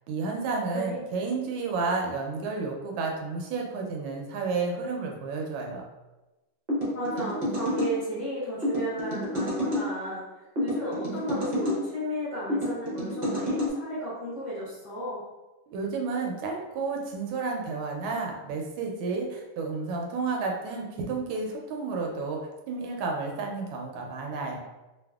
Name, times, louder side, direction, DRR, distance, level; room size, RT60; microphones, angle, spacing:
voice 1, 0.1-5.8 15.7-22.4 22.7-24.6, right 4 dB, 90° right, 1 dB, 1.4 m, -31 dB
voice 2, 0.7-1.1 6.9-15.2, equal, 55° left, -9 dB, 0.9 m, -34 dB
sound 1, 6.7-7.9 8.6-9.9 10.6-11.8 12.5-13.7, left 1 dB, 70° right, 0.5 m, -29 dB
3.4 x 2.1 x 2.3 m, 1.1 s
omnidirectional pair, 2.2 m